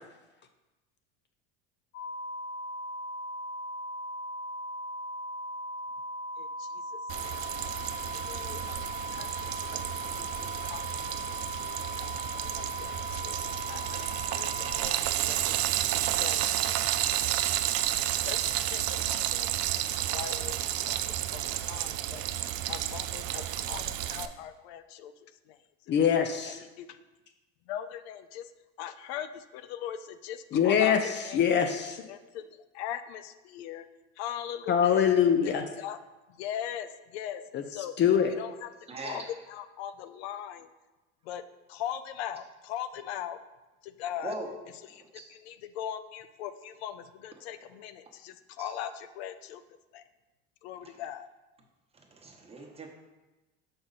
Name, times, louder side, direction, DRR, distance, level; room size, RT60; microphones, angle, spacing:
sound 1, 1.9-14.8, equal, 60° left, 1.0 m, -38 dB
voice 1, 6.4-6.7 7.2-7.4 8.1-9.3 9.6-9.8 10.1-10.8 11.3-11.4 12.0-12.1 12.4-13.4 13.7-14.0 14.3-15.0 15.3-15.5 16.2-16.8 18.2-19.8 20.1-20.6 20.9-21.0 21.3-22.2 22.7-25.1 26.8-26.9 27.7-28.4 28.8-31.4 32.1-32.4 32.7-33.8 34.2-35.0 35.4-36.0 36.4-37.9 38.4-38.7 39.0-39.2 39.5-40.7 41.3-41.4 41.7-43.4 43.8-44.3 44.9-45.0 45.4-49.6 49.9-50.0 50.6-51.3, left 10 dB, 85° left, 11 dB, 0.5 m, -40 dB
Frying (food), 7.1-24.2, right 12 dB, 50° right, 0.4 m, -31 dB
voice 2, 25.9-26.6 30.5-32.0 34.7-35.6 37.5-37.6 38.0-38.3, left 8 dB, 35° left, 6 dB, 0.5 m, -24 dB
voice 3, 38.9-39.2 44.2-44.6 44.9-45.3 48.6-48.7 50.8-51.0 51.9-52.9, right 2 dB, 20° right, 1 dB, 1.0 m, -41 dB
5.9 x 5.0 x 4.0 m, 1.1 s
supercardioid pair, 110°, 31 cm